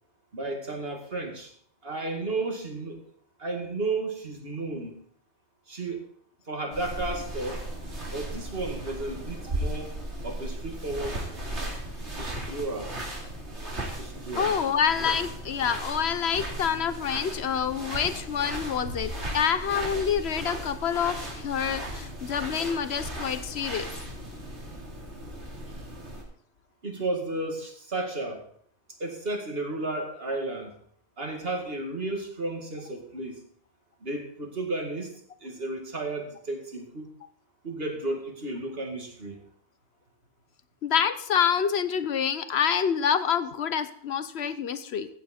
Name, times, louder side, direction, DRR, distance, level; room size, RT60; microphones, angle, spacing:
voice 1, 0.3-1.5 1.8-3.0 3.4-5.0 5.7-6.1 6.5-7.6 8.0-9.9 10.2-11.4 12.2-12.9 14.0-14.5 18.9-19.1 25.7-25.8 26.8-28.4 29.0-30.7 31.2-33.4 34.0-35.1 35.4-37.1 37.6-39.4, right 2 dB, 60° right, 2 dB, 2.3 m, -33 dB
sound 1, 6.7-26.2, right 1 dB, 90° right, 3.1 m, -36 dB
voice 2, 14.4-23.9 40.8-45.1, left 7 dB, 70° left, 12 dB, 1.1 m, -27 dB
14.5 x 8.8 x 4.3 m, 0.64 s
omnidirectional pair, 1.1 m